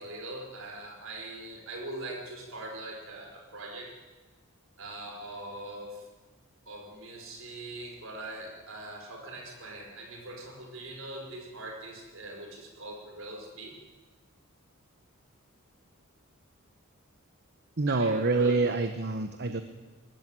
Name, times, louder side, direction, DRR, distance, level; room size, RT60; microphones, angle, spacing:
voice 1, 0.0-3.9 4.8-6.1 6.7-13.8 17.9-18.6, right 2 dB, 65° right, 2 dB, 5.1 m, -42 dB
voice 2, 17.8-19.6, right 3 dB, 50° right, 8 dB, 1.1 m, -26 dB
20.5 x 14.0 x 9.2 m, 1.2 s
head